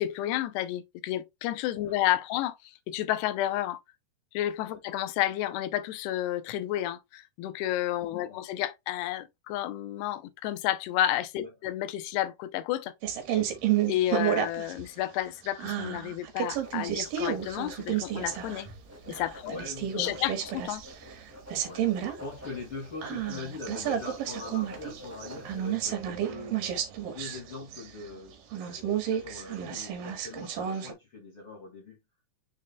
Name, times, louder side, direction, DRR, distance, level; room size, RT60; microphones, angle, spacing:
voice 1, 0.0-3.8 4.3-12.9 13.3-13.4 13.9-18.7 19.1-19.6 19.9-20.8, left 13 dB, 85° left, 2.7 m, -31 dB
voice 2, 8.2-8.5 11.4-11.5 19.4-20.4 21.0-21.1 21.6-21.9 22.2-26.7 27.1-32.0, left 3 dB, 40° left, 2.3 m, -43 dB
sound 1, 13.0-14.8 15.2-18.7 19.1-21.2 21.5-22.2 22.5-22.6 23.0-28.1 28.5-30.9, right 10 dB, 65° right, 2.8 m, -31 dB
Writing, 16.4-25.8, equal, 10° right, 0.7 m, -49 dB
6.6 x 6.4 x 2.2 m
omnidirectional pair, 4.7 m